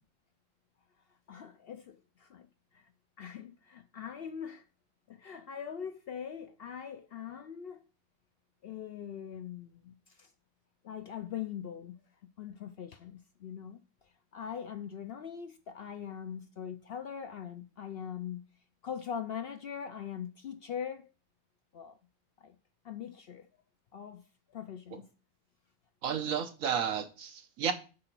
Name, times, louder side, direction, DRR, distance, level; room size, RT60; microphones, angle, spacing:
voice 1, 1.3-2.5 2.7-2.9 3.2-4.7 5.1-7.8 8.6-10.3 10.8-12.0 12.4-18.4 18.8-21.1 21.7-22.0 22.4-22.6 22.8-23.5 23.9-25.0, left 8 dB, 60° left, 0.6 m, -42 dB
voice 2, 26.0-27.7, right 7 dB, 80° right, 1.3 m, -32 dB
8.6 x 3.9 x 5.9 m
omnidirectional pair, 1.4 m